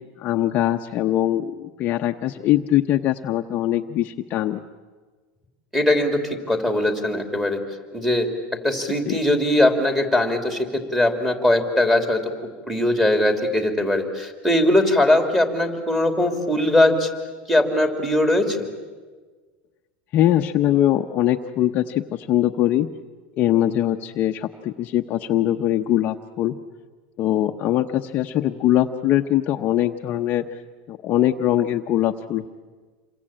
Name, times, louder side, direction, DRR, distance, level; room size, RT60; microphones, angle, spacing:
voice 1, 0.2-4.6 9.1-9.2 20.1-22.9 23.4-26.5 27.2-30.6 30.9-32.5, left 12 dB, 35° left, 5 dB, 0.9 m, -22 dB
voice 2, 5.7-7.6 7.9-8.3 8.6-10.7 10.9-12.2 12.7-17.1 17.5-18.7, left 1 dB, 5° right, 5 dB, 3.1 m, -20 dB
28.0 x 23.5 x 8.9 m, 1.4 s
supercardioid pair, 150°, 5 cm